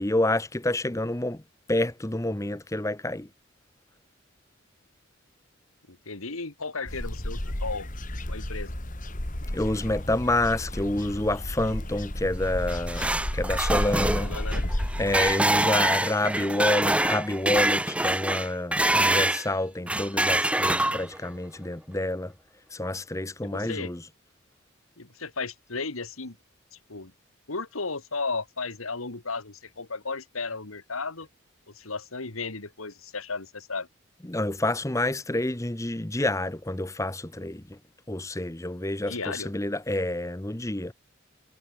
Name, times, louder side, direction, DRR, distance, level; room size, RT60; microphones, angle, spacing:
voice 1, 0.0-1.4 1.7-3.3 9.5-14.3 15.0-22.3 22.7-24.0 34.2-37.8 38.1-40.9, left 1 dB, 15° left, 1.0 m, -28 dB
voice 2, 5.9-7.9 8.3-8.8 14.2-14.6 23.5-23.9 25.0-26.4 26.7-27.1 27.5-31.3 31.7-33.9 39.1-39.5, left 4 dB, 85° left, 2.3 m, -34 dB
sound 1, 6.9-15.4, left 1 dB, 40° left, 2.4 m, -32 dB
sound 2, 12.5-19.5 19.9-21.3, right 1 dB, 5° right, 1.5 m, -25 dB
head